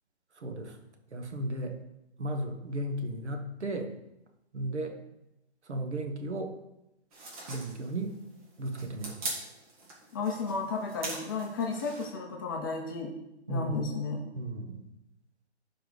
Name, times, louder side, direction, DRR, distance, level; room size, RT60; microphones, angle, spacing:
voice 1, 0.4-0.8 1.1-1.8 2.2-3.9 4.5-5.0 5.7-6.5 7.5-8.1 8.6-9.2 13.5-13.8 14.3-14.8, right 1 dB, 75° right, 4 dB, 1.7 m, -34 dB
sound 1, 7.1-12.1, right 2 dB, 30° right, 2.1 m, -42 dB
voice 2, 10.1-13.1 13.5-14.2, left 4 dB, 20° left, 1 dB, 0.7 m, -33 dB
12.0 x 4.7 x 4.0 m, 0.88 s
hypercardioid pair, 160°, 34 cm